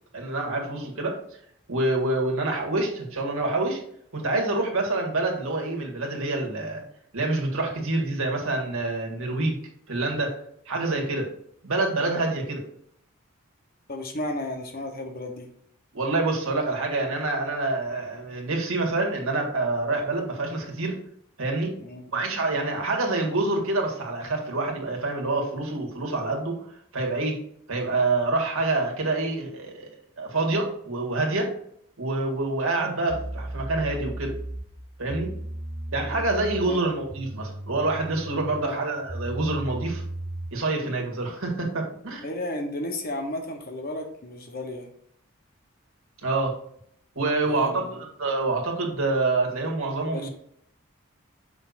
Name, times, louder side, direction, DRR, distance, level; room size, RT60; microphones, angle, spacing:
voice 1, 0.1-1.1 1.7-3.8 4.1-6.8 7.1-9.6 9.9-10.3 10.7-11.3 11.6-12.6 15.9-21.0 21.4-21.8 22.1-26.7 26.9-27.4 27.7-29.9 30.2-31.5 32.0-34.3 35.0-35.3 35.9-40.0 40.5-42.2 46.2-46.5 47.2-50.3, right 2 dB, 70° right, 0 dB, 1.8 m, -26 dB
voice 2, 13.9-15.5 21.8-22.0 36.7-36.8 38.6-38.8 42.2-44.9 47.4-48.0 50.1-50.3, left 1 dB, 45° left, 3 dB, 1.1 m, -33 dB
sound 1, 33.1-40.6, right 1 dB, 20° right, 0.7 m, -36 dB
6.7 x 6.0 x 2.6 m, 0.67 s
head